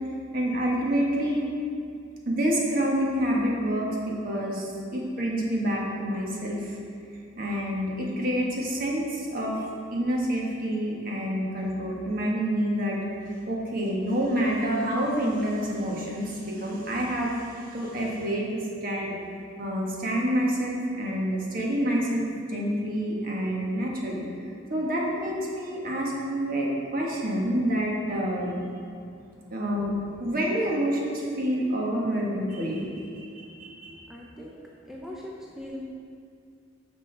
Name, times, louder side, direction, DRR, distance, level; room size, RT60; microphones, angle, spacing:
voice 1, 0.3-1.5 2.2-6.8 7.4-9.6 9.9-13.0 13.5-24.3 24.7-28.5 29.5-34.0, equal, 45° right, -3 dB, 1.3 m, -28 dB
voice 2, 34.1-35.8, left 1 dB, ahead, -3 dB, 0.5 m, -41 dB
9.6 x 6.1 x 3.3 m, 2.4 s
head